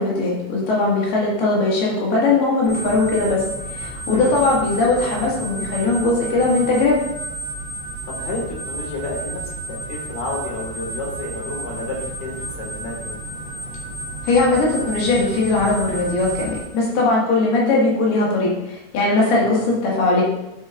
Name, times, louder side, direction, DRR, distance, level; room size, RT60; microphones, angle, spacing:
voice 1, 0.0-3.4 3.7-7.0 14.2-20.2, left 3 dB, 70° left, -4 dB, 3.7 m, -19 dB
sound 1, 2.6-16.6, right 2 dB, 25° left, 1.0 m, -32 dB
voice 2, 8.1-13.1 19.3-19.6, left 2 dB, 55° left, -1 dB, 3.0 m, -31 dB
9.5 x 8.2 x 2.5 m, 0.91 s
omnidirectional pair, 4.8 m